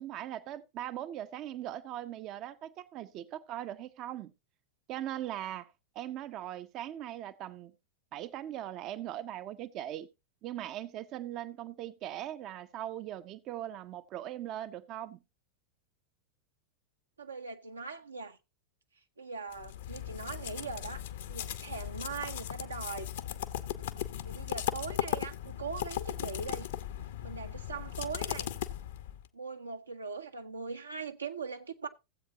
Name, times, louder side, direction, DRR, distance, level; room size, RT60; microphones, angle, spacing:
voice 1, 0.0-4.3 4.9-7.7 8.1-10.1 10.4-15.2, right 12 dB, 35° right, 0.5 m, -40 dB
voice 2, 17.2-18.4 19.2-21.0 21.3-23.1 24.2-26.7 27.2-28.6 29.3-31.9, right 5 dB, 75° right, 0.9 m, -41 dB
sound 1, 19.5-29.3, left 12 dB, 60° left, 0.8 m, -37 dB
15.5 x 7.9 x 2.8 m
figure-of-eight pair, 90°, 0 cm